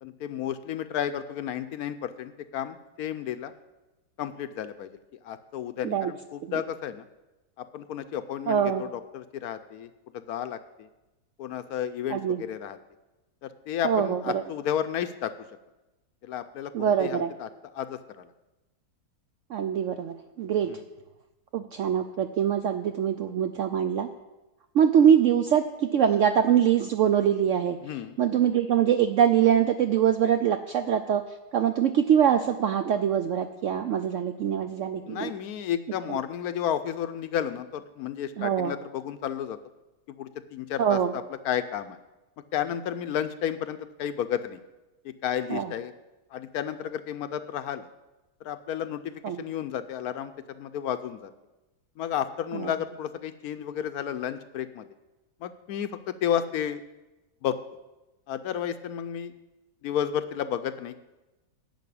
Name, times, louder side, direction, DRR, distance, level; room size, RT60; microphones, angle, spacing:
voice 1, 0.0-3.5 4.2-5.0 5.2-7.0 7.6-10.9 11.4-12.8 13.4-15.3 16.2-18.3 20.7-20.8 27.8-28.2 35.0-39.6 40.2-42.0 42.5-44.6 45.0-45.9 46.3-47.9 48.4-51.3 52.0-54.9 55.4-56.8 57.4-57.6 58.3-59.3 59.8-61.0, left 9 dB, 70° left, 11 dB, 1.0 m, -32 dB
voice 2, 8.5-8.9 12.1-12.4 13.8-14.4 16.7-17.3 19.5-20.8 21.5-24.1 24.7-27.8 28.2-31.2 31.5-35.3 38.4-38.7 40.8-41.1 45.5-45.7 49.2-49.4 52.5-52.7, right 9 dB, 75° right, 8 dB, 0.7 m, -23 dB
10.5 x 6.0 x 8.4 m, 1.0 s
omnidirectional pair, 1.8 m